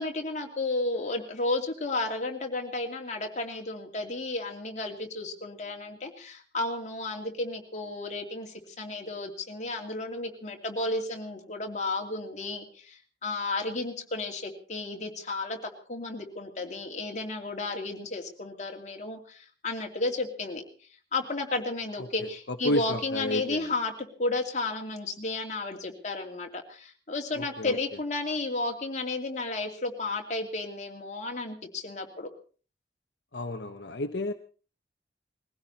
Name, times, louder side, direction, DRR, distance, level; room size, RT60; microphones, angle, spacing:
voice 1, 0.0-20.6 21.1-23.9 24.2-32.3, left 2 dB, 45° left, 2 dB, 2.7 m, -33 dB
voice 2, 22.6-23.6 27.4-27.7 33.3-34.3, left 1 dB, 75° left, 5 dB, 1.1 m, -31 dB
21.0 x 16.0 x 4.2 m, 0.38 s
head